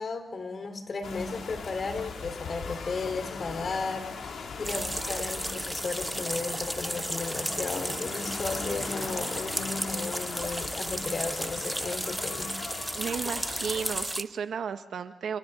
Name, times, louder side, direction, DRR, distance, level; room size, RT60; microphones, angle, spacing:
voice 1, 0.0-4.3 4.6-12.6, left 4 dB, 55° left, 6 dB, 3.9 m, -34 dB
sound 1, 1.0-14.0, left 5 dB, 80° left, 2.7 m, -39 dB
sound 2, 4.6-14.2, right 1 dB, 10° right, 0.9 m, -34 dB
voice 2, 12.9-15.4, right 7 dB, 80° right, 9 dB, 1.3 m, -34 dB
29.5 x 28.5 x 3.9 m, 0.98 s
cardioid pair, 65°, 0 cm